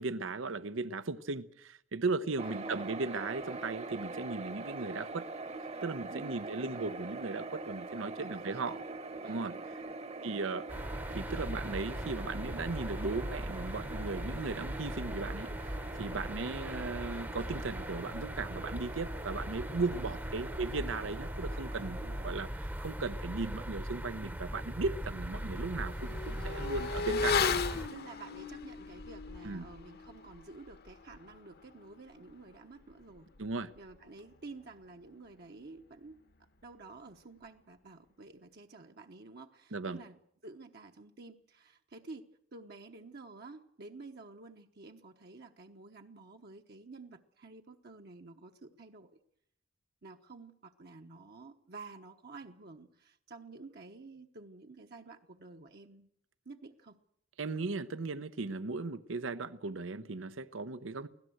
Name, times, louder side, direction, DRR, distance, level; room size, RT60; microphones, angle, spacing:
voice 1, 0.0-5.3 5.8-8.8 9.2-9.8 10.2-10.7 11.1-27.4 29.4-29.7 33.4-33.7 39.7-40.0 57.4-61.1, right 3 dB, 80° right, 0.8 m, -37 dB
sound 1, 2.4-22.3, right 3 dB, 35° right, 1.1 m, -44 dB
voice 2, 2.4-2.9 6.1-6.9 8.1-8.8 9.2-9.6 19.9-20.2 22.0-22.2 27.3-27.6 27.9-33.3 33.7-36.2 36.6-49.1 50.0-56.1 56.4-57.0, right 3 dB, 55° right, 1.1 m, -51 dB
sound 2, 10.7-27.9, equal, 10° right, 0.9 m, -39 dB
Motorcycle / Accelerating revving vroom, 24.2-24.3 24.7-34.7 34.9-35.1, left 5 dB, 55° left, 1.1 m, -38 dB
24.0 x 17.0 x 7.9 m
head